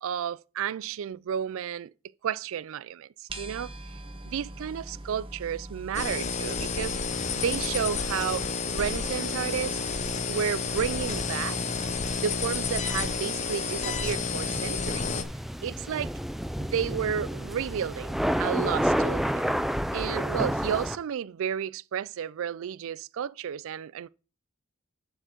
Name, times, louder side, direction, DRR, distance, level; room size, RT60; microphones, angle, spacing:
voice 1, 0.0-1.9 2.2-3.7 4.2-6.9 7.4-8.5 8.7-9.8 10.3-11.6 12.2-15.1 15.6-16.1 16.6-19.4 19.9-24.1, right 8 dB, 65° right, 0.3 m, -32 dB
sound 1, 3.3-6.2, right 2 dB, 25° right, 1.1 m, -41 dB
sound 2, 5.9-15.2, left 5 dB, 35° left, 0.7 m, -30 dB
sound 3, 7.1-21.0, equal, ahead, 0.4 m, -33 dB
7.2 x 5.0 x 6.6 m
head